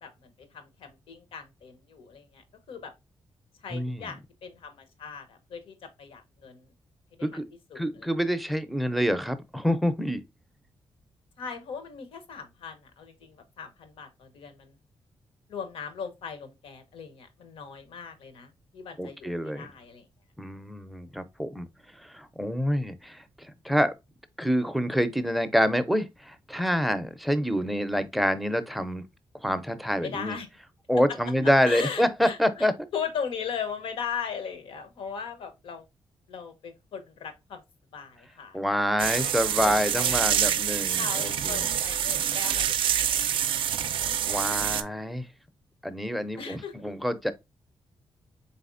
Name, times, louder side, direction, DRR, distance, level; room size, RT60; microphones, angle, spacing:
voice 1, 0.0-2.4 2.7-2.9 3.6-6.7 7.2-7.4 7.7-8.1 11.4-14.8 15.5-20.1 30.0-30.5 31.6-35.9 36.3-37.6 37.9-38.6 39.2-39.3 39.6-40.4 40.9-43.4 46.4-47.0, left 6 dB, 85° left, 0.8 m, -38 dB
voice 2, 3.7-4.0 7.2-7.4 7.8-10.2 19.0-19.7 20.4-21.7 22.1-23.9 24.4-29.0 29.4-30.4 30.9-32.7 38.5-41.6 44.3-45.3 45.8-47.3, equal, ahead, 0.4 m, -27 dB
sound 1, 39.0-44.8, right 9 dB, 70° right, 0.3 m, -26 dB
4.1 x 3.7 x 2.4 m
cardioid pair, 125°, 9 cm